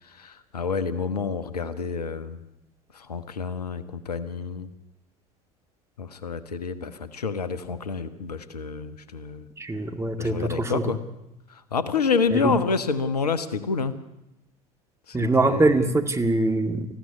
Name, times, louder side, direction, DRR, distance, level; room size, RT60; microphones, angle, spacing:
voice 1, 0.0-2.4 2.9-4.7 6.0-9.5 10.2-11.0 11.5-14.0 15.1-15.9, left 5 dB, 80° left, 13 dB, 1.3 m, -28 dB
voice 2, 9.6-10.9 12.3-12.6 15.1-16.9, right 2 dB, 15° right, 5 dB, 2.2 m, -23 dB
19.5 x 15.0 x 9.8 m, 0.91 s
figure-of-eight pair, 70°, 20 cm